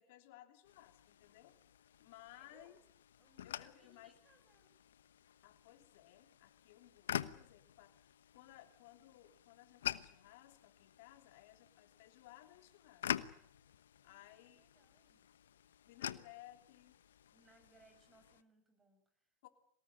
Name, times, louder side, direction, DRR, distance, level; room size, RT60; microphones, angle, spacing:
voice 1, 0.0-1.6 2.0-2.8 3.4-4.2 5.4-13.1 14.0-14.7 15.4-15.5 15.8-17.0 19.4-19.5, left 15 dB, 65° left, 7 dB, 3.2 m, -60 dB
sound 1, 0.7-18.4, left 10 dB, 85° left, 1.0 m, -47 dB
voice 2, 2.3-2.8 3.2-4.7 14.0-15.3 17.3-19.3, right 2 dB, 15° right, 8 dB, 7.7 m, -69 dB
23.0 x 19.0 x 9.8 m, 0.68 s
hypercardioid pair, 105°, 0 cm